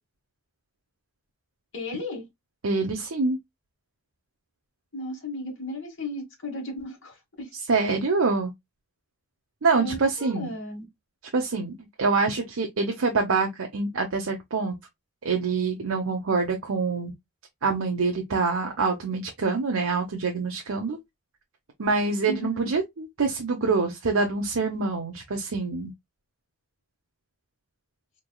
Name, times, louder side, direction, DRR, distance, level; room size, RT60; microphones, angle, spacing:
voice 1, 1.7-2.3 4.9-7.5 9.7-10.8 22.3-22.7, left 1 dB, 60° left, 1.6 m, -35 dB
voice 2, 2.6-3.4 7.7-8.5 9.6-10.5 11.3-14.7 15.2-17.1 17.6-21.0 21.8-25.9, right 4 dB, 85° right, 0.8 m, -25 dB
4.0 x 3.4 x 2.2 m
head